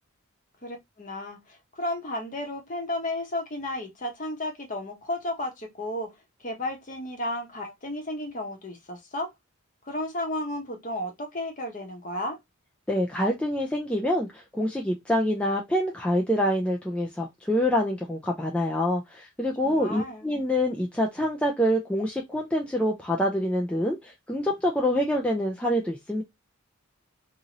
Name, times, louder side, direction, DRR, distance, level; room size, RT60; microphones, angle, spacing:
voice 1, 0.6-6.1 6.4-9.3 9.8-12.4 19.6-20.3, left 1 dB, 35° left, 0.8 m, -33 dB
voice 2, 12.9-26.2, equal, 5° left, 0.3 m, -26 dB
2.6 x 2.6 x 2.9 m
head